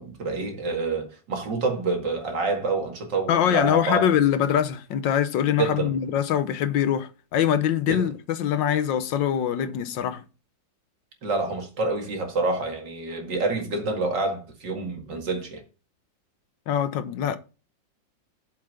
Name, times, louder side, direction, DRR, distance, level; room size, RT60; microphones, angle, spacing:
voice 1, 0.0-4.2 5.6-5.9 7.9-8.1 11.2-15.6, right 3 dB, 65° right, 2.7 m, -27 dB
voice 2, 3.3-10.2 16.7-17.4, left 9 dB, 80° left, 1.5 m, -23 dB
7.4 x 6.0 x 5.7 m
omnidirectional pair, 2.1 m